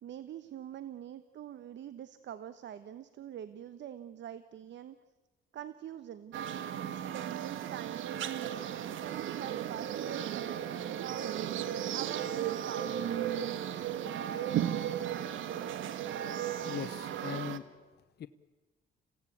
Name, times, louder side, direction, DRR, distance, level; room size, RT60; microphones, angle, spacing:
voice 1, 0.0-5.0 5.5-6.3 6.9-11.3 11.9-13.0, right 10 dB, 65° right, 13 dB, 1.0 m, -44 dB
sound 1, 6.3-17.6, right 10 dB, 80° right, 1.3 m, -35 dB
voice 2, 16.6-17.6 18.2-18.3, left 10 dB, 55° left, 11 dB, 0.8 m, -39 dB
28.0 x 16.5 x 8.5 m, 1.3 s
cardioid pair, 90°, 20 cm